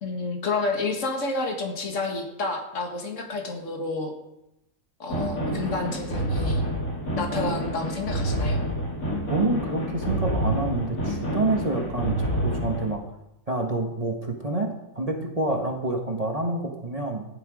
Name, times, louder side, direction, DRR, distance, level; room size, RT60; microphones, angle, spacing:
voice 1, 0.0-4.1 5.0-6.6 7.2-8.6, left 3 dB, 65° left, 2 dB, 2.1 m, -30 dB
sound 1, 5.1-12.9, right 1 dB, 85° left, 3.4 m, -28 dB
voice 2, 9.3-13.0 13.5-17.3, right 2 dB, 30° right, 1 dB, 1.4 m, -28 dB
15.0 x 11.0 x 5.0 m, 0.87 s
omnidirectional pair, 1.4 m